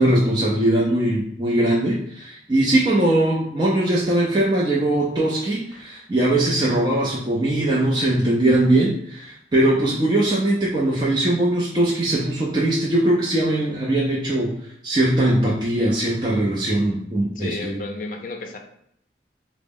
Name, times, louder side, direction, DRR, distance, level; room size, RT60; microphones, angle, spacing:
voice 1, 0.0-14.5 14.8-17.8, right 1 dB, 25° right, -5 dB, 0.4 m, -20 dB
voice 2, 17.4-18.6, left 3 dB, 45° left, 3 dB, 0.5 m, -32 dB
3.9 x 2.0 x 3.6 m, 0.73 s
head